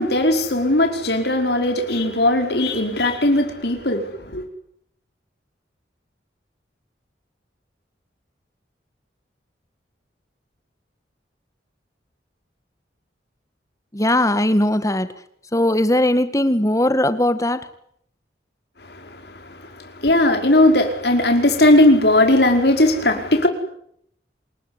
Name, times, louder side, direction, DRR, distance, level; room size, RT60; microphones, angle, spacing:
voice 1, 0.0-4.0 4.3-4.4 20.0-23.5, left 1 dB, 65° left, 5.2 m, -17 dB
voice 2, 13.9-15.1 15.5-17.7, left 1 dB, 20° left, 1.9 m, -19 dB
27.5 x 20.0 x 9.9 m
head